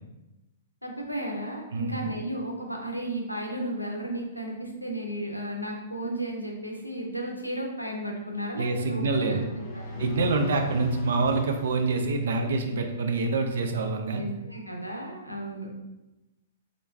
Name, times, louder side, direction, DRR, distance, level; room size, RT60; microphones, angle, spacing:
voice 1, 0.8-10.0 14.1-15.7, right 1 dB, 90° left, 1 dB, 0.6 m, -34 dB
voice 2, 8.6-9.4 10.0-14.2, right 3 dB, 55° right, 4 dB, 0.4 m, -26 dB
sound 1, 9.1-12.9, left 1 dB, 30° left, 0.6 m, -38 dB
3.1 x 2.5 x 3.1 m, 1.0 s
figure-of-eight pair, 110°, 0 cm